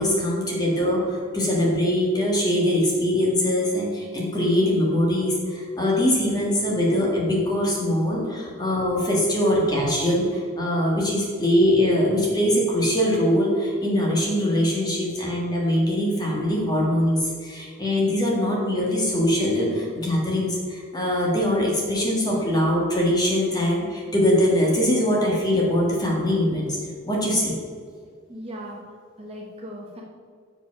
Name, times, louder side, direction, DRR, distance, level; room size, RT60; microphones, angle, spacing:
voice 1, 0.0-26.7 27.0-27.6, left 1 dB, 20° left, -3 dB, 1.6 m, -22 dB
voice 2, 28.3-28.8 29.2-30.0, equal, 30° right, -2 dB, 1.0 m, -38 dB
6.9 x 5.1 x 5.8 m, 2.1 s
head